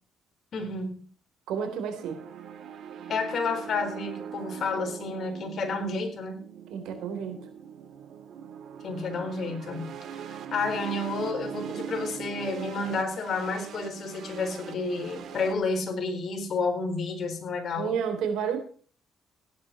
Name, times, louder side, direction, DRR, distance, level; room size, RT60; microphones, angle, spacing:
voice 1, 0.5-1.0 3.1-6.4 8.8-10.2 10.5-17.9, left 3 dB, 60° left, 4 dB, 4.2 m, -30 dB
voice 2, 1.5-2.2 6.7-7.4 17.8-18.6, right 7 dB, 90° right, 7 dB, 3.6 m, -30 dB
sound 1, 2.0-15.5, right 8 dB, 70° right, 2.2 m, -41 dB
16.0 x 11.0 x 4.3 m, 0.42 s
cardioid pair, 90°, 0 cm